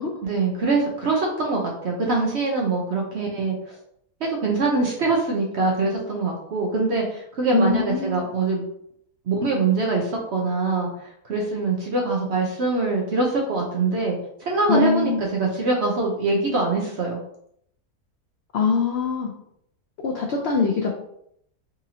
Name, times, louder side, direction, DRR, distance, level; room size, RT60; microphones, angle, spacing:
voice 1, 0.2-3.8 4.2-8.7 9.3-17.2, right 3 dB, 60° right, -1 dB, 0.8 m, -24 dB
voice 2, 7.5-8.2 14.7-15.2 18.5-19.3 20.0-20.9, left 5 dB, 70° left, -1 dB, 0.6 m, -22 dB
4.0 x 2.6 x 2.8 m, 0.71 s
omnidirectional pair, 1.6 m